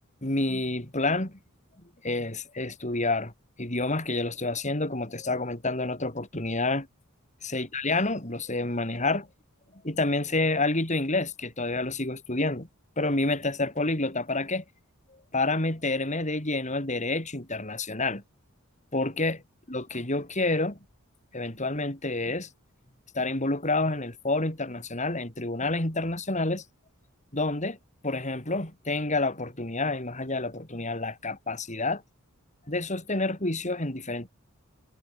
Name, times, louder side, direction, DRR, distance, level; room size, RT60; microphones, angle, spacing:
voice 1, 0.2-1.3 2.0-3.3 3.6-6.9 7.4-9.3 9.8-12.7 13.0-14.6 15.3-18.2 18.9-19.4 19.7-20.8 21.3-22.5 23.1-26.6 27.3-27.8 28.0-32.0 32.7-34.3, left 2 dB, 35° left, 4.7 m, -28 dB
head